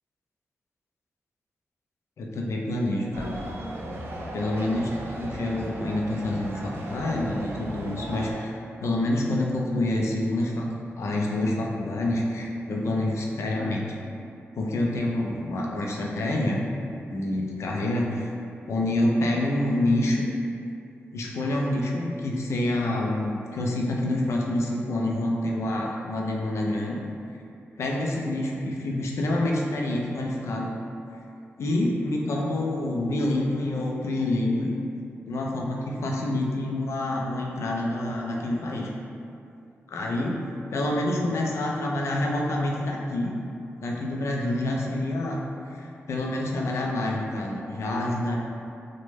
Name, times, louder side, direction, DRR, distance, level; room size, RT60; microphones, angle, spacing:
voice 1, 2.2-3.4 4.3-4.9 5.2-8.5 8.8-13.9 14.5-16.6 17.1-18.3 18.7-20.3 21.1-27.0 27.8-30.7 31.6-34.7 35.3-38.9 39.9-40.4 40.7-43.3 43.8-45.4 45.7-48.3, left 1 dB, 75° left, -1 dB, 0.4 m, -27 dB
sound 1, 3.1-8.3, right 1 dB, 60° right, 0.4 m, -37 dB
3.0 x 2.1 x 3.2 m, 2.6 s
wide cardioid pair, 105°, 5 cm